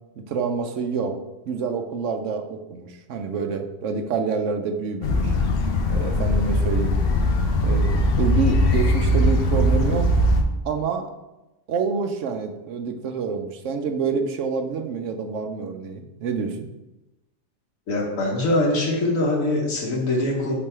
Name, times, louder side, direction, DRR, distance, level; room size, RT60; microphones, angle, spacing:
voice 1, 0.2-1.2 1.5-5.3 5.9-7.0 7.6-10.0 10.6-11.1 11.7-16.7, right 5 dB, 70° right, 6 dB, 1.0 m, -27 dB
sound 1, 5.0-10.4, left 1 dB, 55° left, 0.8 m, -20 dB
voice 2, 17.9-20.5, left 1 dB, 85° left, -3 dB, 1.4 m, -23 dB
5.4 x 4.0 x 4.3 m, 1.0 s
omnidirectional pair, 1.3 m